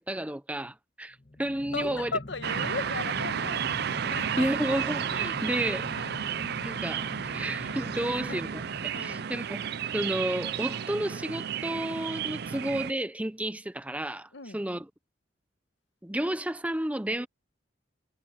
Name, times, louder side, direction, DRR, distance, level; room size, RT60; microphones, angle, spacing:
voice 1, 0.0-2.1 4.1-5.9 6.6-9.7 9.9-14.9 16.0-17.3, right 1 dB, 5° right, 0.6 m, -32 dB
sound 1, 1.1-9.5, left 1 dB, 35° left, 1.3 m, -44 dB
voice 2, 1.7-3.6 4.0-4.5 6.0-6.2 8.3-8.4 8.9-9.2 14.3-14.6, left 3 dB, 70° left, 1.5 m, -36 dB
sound 2, 2.4-12.9, right 8 dB, 55° right, 0.5 m, -32 dB
head